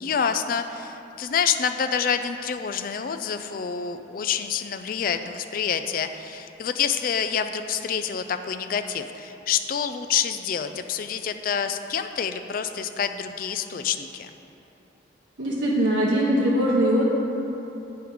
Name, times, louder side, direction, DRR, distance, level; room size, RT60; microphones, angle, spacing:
voice 1, 0.0-14.3, left 7 dB, 45° left, 8 dB, 0.3 m, -27 dB
voice 2, 15.4-17.1, equal, 75° right, -6 dB, 1.0 m, -21 dB
9.2 x 4.6 x 4.9 m, 3.0 s
head